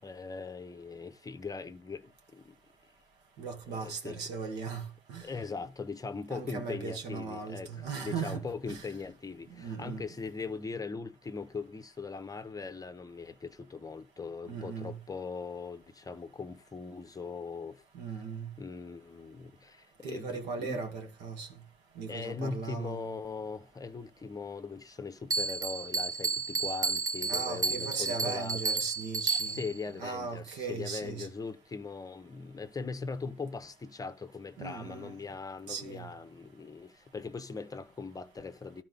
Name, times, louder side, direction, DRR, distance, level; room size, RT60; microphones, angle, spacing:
voice 1, 0.0-2.5 3.7-4.2 5.2-17.8 18.6-20.9 22.1-28.6 29.5-38.8, left 4 dB, 20° left, 0.8 m, -40 dB
voice 2, 3.4-5.3 6.3-8.8 9.6-10.1 14.4-15.0 17.9-18.5 20.0-21.5 22.0-23.0 27.3-29.6 30.0-31.3 34.6-35.2 35.7-36.1, right 5 dB, 85° right, 2.0 m, -38 dB
Bell, 25.3-29.8, right 4 dB, 20° right, 0.5 m, -32 dB
12.5 x 4.2 x 4.0 m
cardioid pair, 110°, 17 cm